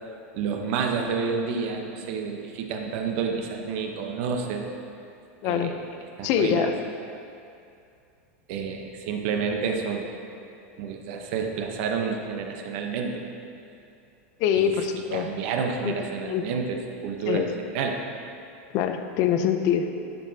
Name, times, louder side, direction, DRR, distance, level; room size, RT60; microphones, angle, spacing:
voice 1, 0.3-4.7 5.4-5.8 6.2-6.7 8.5-10.1 10.8-13.2 14.5-14.7 15.1-17.5 17.7-18.0, right 5 dB, 55° right, 3 dB, 0.8 m, -29 dB
voice 2, 5.4-5.7 6.2-6.7 14.4-15.3 15.8-15.9 16.2-16.5 17.3-17.5 18.7-19.8, left 9 dB, 45° left, 7 dB, 0.5 m, -24 dB
10.5 x 7.0 x 2.8 m, 2.6 s
supercardioid pair, 145°, 8 cm